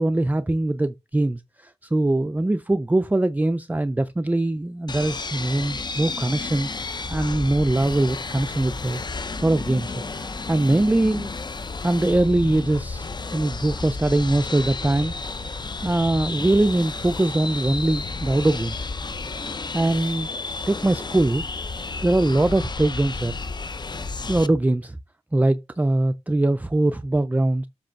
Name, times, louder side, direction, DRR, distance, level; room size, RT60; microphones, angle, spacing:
voice 1, 0.0-9.0 9.4-11.3 11.8-13.1 13.3-15.1 15.8-18.9 19.7-20.3 20.7-21.4 22.0-23.3 24.3-25.0 25.3-27.7, right 2 dB, 15° right, 0.4 m, -22 dB
sound 1, 4.9-24.5, left 3 dB, 40° left, 0.6 m, -32 dB
7.7 x 3.2 x 5.6 m
wide cardioid pair, 100°, 12 cm